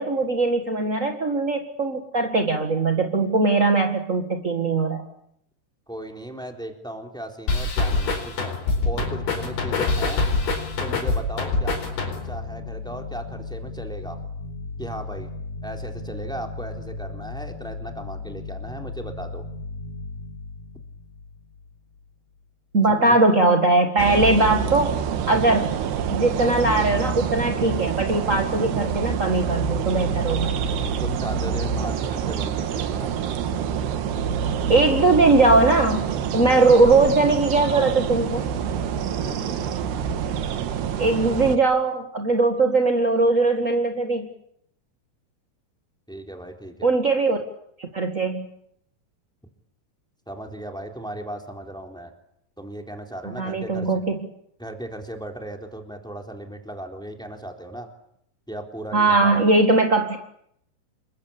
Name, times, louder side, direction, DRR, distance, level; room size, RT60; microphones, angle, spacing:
voice 1, 0.0-5.0 22.7-25.0 25.3-25.7 26.1-30.6 34.7-38.5 41.0-44.3 46.8-47.4 47.8-48.5 53.4-54.2 58.9-60.2, right 3 dB, 40° right, 4 dB, 1.1 m, -20 dB
voice 2, 5.9-8.5 8.8-10.2 10.8-11.8 12.1-14.2 14.8-15.3 15.6-19.4 22.9-23.2 31.0-33.1 39.2-39.6 46.1-46.9 50.3-52.1 52.6-53.9 54.6-57.9 58.5-59.5, right 1 dB, ahead, 3 dB, 3.1 m, -36 dB
sound 1, 7.5-12.4, left 3 dB, 85° left, 6.5 m, -25 dB
sound 2, 8.9-22.1, left 3 dB, 45° left, 4.0 m, -36 dB
sound 3, 24.0-41.6, right 7 dB, 85° right, 3.7 m, -26 dB
28.0 x 23.0 x 8.8 m, 0.73 s
omnidirectional pair, 4.6 m